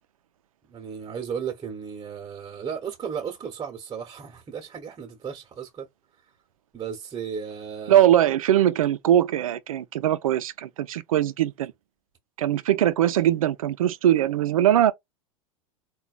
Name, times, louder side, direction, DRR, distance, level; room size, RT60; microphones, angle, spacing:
voice 1, 0.7-5.9 6.7-8.0, right 7 dB, 25° right, 0.9 m, -35 dB
voice 2, 7.9-11.7 12.4-14.9, right 11 dB, 80° right, 0.4 m, -21 dB
3.9 x 2.3 x 2.3 m
hypercardioid pair, 95°, 18 cm